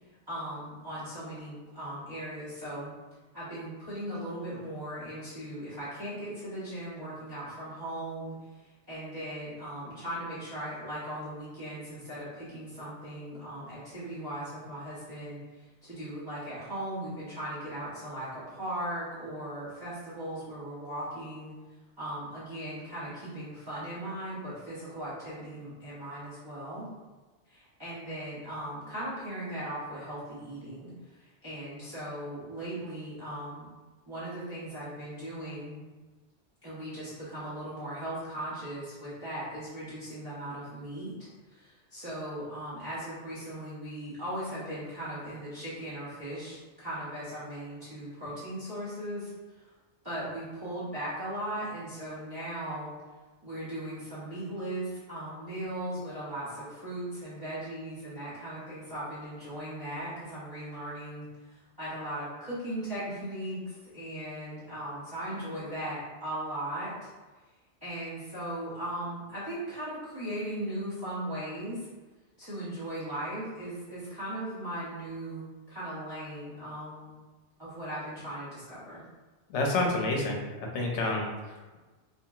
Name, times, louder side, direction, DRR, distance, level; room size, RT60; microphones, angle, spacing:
voice 1, 0.3-2.9 3.3-8.3 8.6-21.5 22.0-26.9 27.5-33.7 34.1-35.8 36.6-49.7 50.0-52.9 53.4-67.1 67.8-71.9 72.4-77.1 77.6-79.0, right 1 dB, 25° right, -13 dB, 0.7 m, -38 dB
voice 2, 79.5-81.8, left 2 dB, 85° left, 0 dB, 0.9 m, -29 dB
2.8 x 2.5 x 2.3 m, 1.2 s
omnidirectional pair, 1.2 m